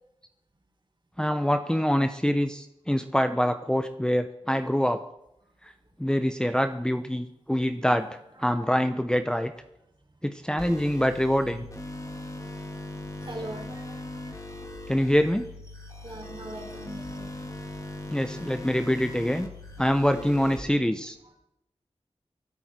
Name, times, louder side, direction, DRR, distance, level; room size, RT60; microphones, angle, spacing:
voice 1, 1.2-5.0 6.0-8.1 8.4-9.5 10.2-11.7 14.9-15.4 18.1-19.5 19.8-21.2, equal, 5° left, 7 dB, 0.9 m, -25 dB
voice 2, 7.6-8.0 8.4-8.6 13.2-14.5 15.7-17.7 21.2-21.3, right 2 dB, 50° right, 0 dB, 4.6 m, -43 dB
sound 1, 10.6-20.6, left 1 dB, 30° left, 2.5 m, -39 dB
24.5 x 8.9 x 4.5 m, 0.83 s
cardioid pair, 40°, 11 cm